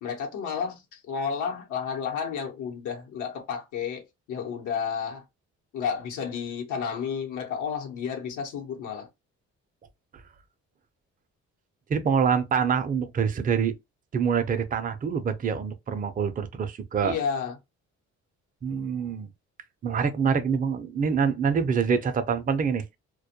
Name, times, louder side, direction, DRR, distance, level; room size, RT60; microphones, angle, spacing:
voice 1, 0.0-5.2 5.7-9.1 17.0-17.6, left 6 dB, 80° left, 0.9 m, -31 dB
voice 2, 11.9-13.7 14.1-17.2 18.6-19.3 19.8-23.0, right 6 dB, 30° right, 0.4 m, -25 dB
2.2 x 2.1 x 2.8 m
cardioid pair, 90°, 30 cm